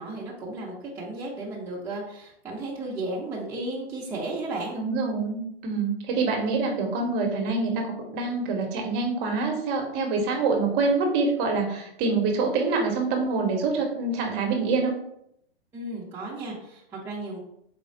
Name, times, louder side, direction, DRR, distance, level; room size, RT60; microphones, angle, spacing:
voice 1, 0.0-4.8 15.7-17.4, right 2 dB, 10° right, -6 dB, 0.7 m, -34 dB
voice 2, 4.7-14.9, right 3 dB, 30° right, 2 dB, 0.9 m, -26 dB
4.3 x 2.3 x 4.1 m, 0.75 s
hypercardioid pair, 120°, 31 cm